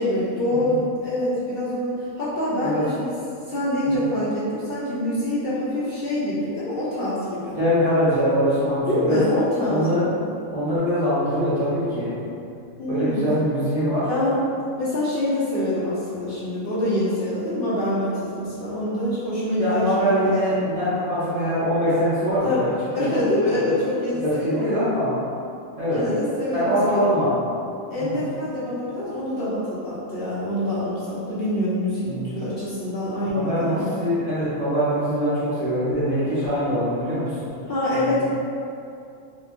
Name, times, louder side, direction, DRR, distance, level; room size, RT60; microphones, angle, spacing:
voice 1, 0.0-3.1 3.5-7.6 8.9-10.1 12.8-13.2 14.1-14.4 14.8-20.5 22.4-22.6 22.9-24.9 25.9-27.0 27.9-34.0 37.7-38.2, left 1 dB, 50° left, -10 dB, 0.8 m, -25 dB
voice 2, 7.6-9.2 9.7-10.0 10.5-12.1 12.9-14.1 19.6-22.7 23.0-23.1 23.5-23.6 24.2-25.1 25.8-26.1 26.5-27.3 28.0-28.2 32.0-32.3 33.3-37.5 37.9-38.2, equal, 30° right, -13 dB, 0.8 m, -23 dB
3.9 x 2.4 x 3.0 m, 2.5 s
omnidirectional pair, 1.4 m